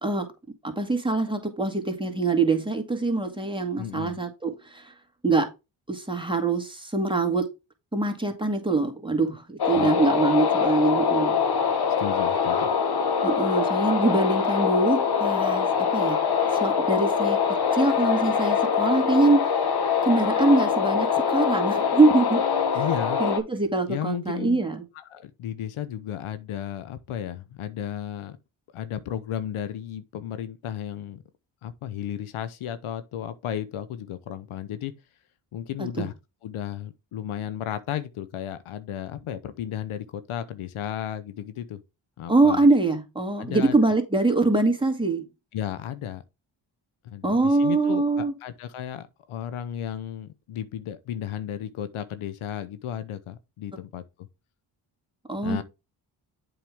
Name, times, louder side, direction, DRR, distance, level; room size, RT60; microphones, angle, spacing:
voice 1, 0.6-4.9 5.2-5.5 5.9-7.5 7.9-11.4 13.2-15.7 15.9-16.2 16.5-17.4 17.7-19.5 20.0-22.4 22.7-22.8 23.2-24.9 36.0-36.1 42.3-45.3 47.2-48.3 55.3-55.6, right 3 dB, 10° right, 2.1 m, -23 dB
voice 2, 3.8-4.2 9.7-9.9 12.0-12.7 22.7-23.2 23.9-24.6 24.9-28.4 28.7-31.2 31.6-34.9 35.5-36.1 36.4-41.8 42.2-42.7 43.4-43.7 45.5-46.2 47.0-54.3 55.4-55.6, left 10 dB, 80° left, 0.8 m, -34 dB
sound 1, 9.6-23.4, left 6 dB, 50° left, 1.3 m, -24 dB
7.7 x 5.0 x 3.5 m
supercardioid pair, 45°, 49 cm